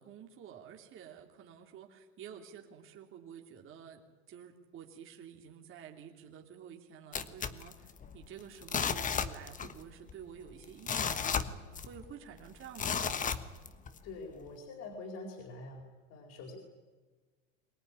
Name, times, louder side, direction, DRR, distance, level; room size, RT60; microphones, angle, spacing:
voice 1, 0.0-13.5, right 8 dB, 35° right, 2 dB, 3.1 m, -51 dB
sound 1, 7.1-8.2 8.6-9.8 10.1-10.2 10.6-12.1 12.7-14.0 14.5-14.6, left 6 dB, 25° left, 1.4 m, -34 dB
voice 2, 14.0-16.6, left 3 dB, 45° left, 2 dB, 4.5 m, -45 dB
23.5 x 18.5 x 9.9 m, 1.4 s
supercardioid pair, 120°, 34 cm